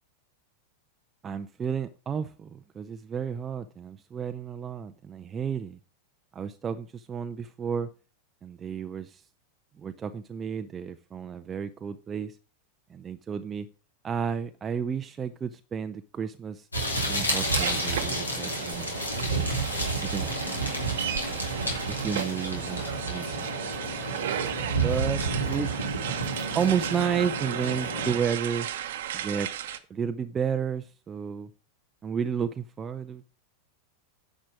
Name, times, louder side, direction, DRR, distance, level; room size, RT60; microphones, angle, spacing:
voice 1, 1.2-5.8 6.3-7.9 8.4-9.2 9.8-12.4 12.9-13.7 14.0-16.7 17.1-18.9 20.0-20.5 21.9-23.8 24.8-26.2 26.5-28.7 29.1-29.5 29.9-31.5 32.0-33.3, right 7 dB, 20° right, 0.6 m, -32 dB
sound 1, 16.7-28.1, right 2 dB, 80° left, 3.2 m, -30 dB
sound 2, 17.3-29.8, right 11 dB, 55° right, 1.0 m, -35 dB
10.0 x 6.3 x 6.0 m
figure-of-eight pair, 90°, 0 cm